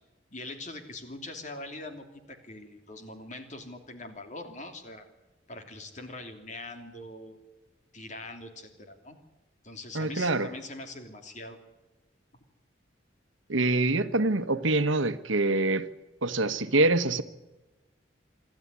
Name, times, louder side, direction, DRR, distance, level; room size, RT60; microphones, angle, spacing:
voice 1, 0.3-5.0 5.5-7.4 7.9-9.2 9.6-11.6, left 2 dB, 40° left, 3.0 m, -42 dB
voice 2, 9.9-10.5 13.5-15.9 16.2-17.2, right 2 dB, 85° right, 1.3 m, -25 dB
26.5 x 13.0 x 9.8 m
head